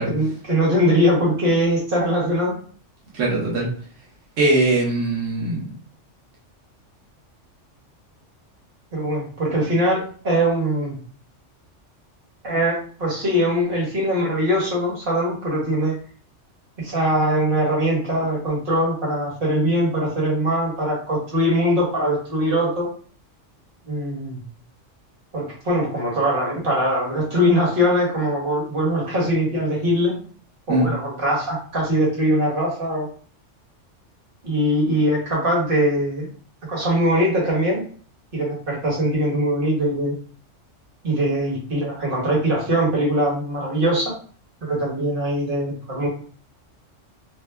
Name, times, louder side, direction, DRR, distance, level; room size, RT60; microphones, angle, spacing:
voice 1, 0.0-2.6 8.9-11.0 12.4-15.9 16.8-22.9 23.9-24.4 25.3-30.2 30.7-33.1 34.4-36.3 36.7-37.8 38.3-40.1 41.0-44.1 44.6-46.1, equal, 45° right, -5 dB, 1.5 m, -21 dB
voice 2, 3.1-3.7 4.4-5.8 30.7-30.9, right 2 dB, 80° right, -4 dB, 1.3 m, -21 dB
3.3 x 2.2 x 3.3 m, 0.44 s
omnidirectional pair, 1.3 m